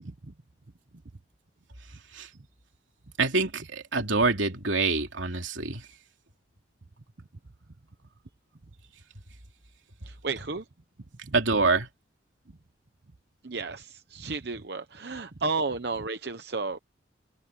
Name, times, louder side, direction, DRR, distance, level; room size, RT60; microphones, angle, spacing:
voice 1, 3.2-5.8 11.3-11.9, right 3 dB, 85° right, 3.1 m, -25 dB
voice 2, 10.1-10.6 11.3-11.4 13.4-16.8, right 3 dB, 55° right, 0.9 m, -32 dB
head